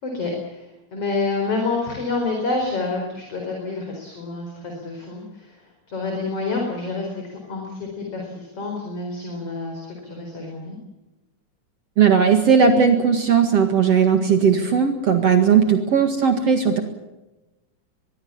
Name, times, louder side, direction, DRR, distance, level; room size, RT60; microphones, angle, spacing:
voice 1, 0.0-10.8 15.3-15.6, left 3 dB, 45° left, 1 dB, 5.4 m, -28 dB
voice 2, 12.0-16.8, right 6 dB, 55° right, 5 dB, 2.8 m, -17 dB
23.5 x 22.5 x 7.3 m, 1.0 s
omnidirectional pair, 3.6 m